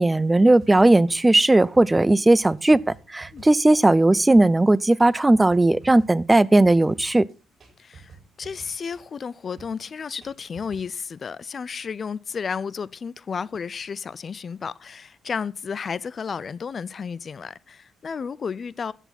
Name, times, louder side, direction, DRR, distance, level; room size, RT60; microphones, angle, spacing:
voice 1, 0.0-7.3, right 2 dB, 15° right, 0.5 m, -17 dB
sound 1, 0.6-10.9, right 5 dB, 45° right, 4.9 m, -50 dB
voice 2, 7.8-18.9, left 6 dB, 45° left, 0.4 m, -32 dB
13.0 x 8.2 x 4.1 m
cardioid pair, 90°, 0 cm